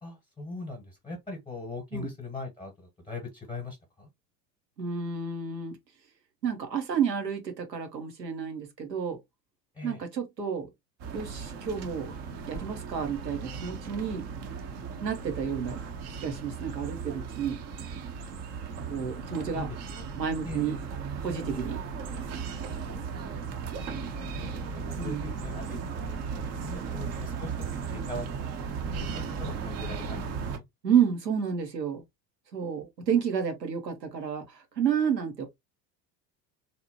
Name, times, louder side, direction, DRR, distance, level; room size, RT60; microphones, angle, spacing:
voice 1, 0.0-4.1 9.7-10.0 19.1-19.8 20.4-20.8 23.9-25.8 26.0-27.5 27.9-28.3 28.5-30.6, left 2 dB, 10° left, 0.9 m, -41 dB
voice 2, 4.8-5.8 6.4-9.2 9.8-10.7 11.1-12.1 12.5-14.3 15.0-15.8 16.2-17.6 18.9-19.7 20.2-20.8 21.2-21.8 25.0-25.2 30.8-32.0 32.5-35.5, right 7 dB, 85° right, 0.7 m, -30 dB
sound 1, 11.0-30.6, right 5 dB, 35° right, 0.5 m, -36 dB
2.8 x 2.0 x 2.7 m
figure-of-eight pair, 70°, 49 cm